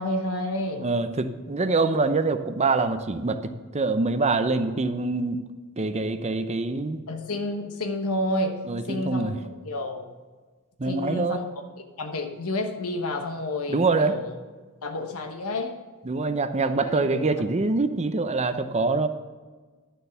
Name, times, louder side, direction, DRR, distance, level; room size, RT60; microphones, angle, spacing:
voice 1, 0.0-0.9 7.1-9.3 9.6-10.1 10.8-11.5 12.0-14.3 14.8-15.8 16.6-17.4, left 1 dB, 70° left, 5 dB, 1.1 m, -30 dB
voice 2, 0.8-5.4 5.8-7.0 8.7-9.3 10.8-11.4 13.7-14.1 16.1-19.1, right 3 dB, 30° right, 9 dB, 0.7 m, -25 dB
11.0 x 6.8 x 5.8 m, 1.4 s
head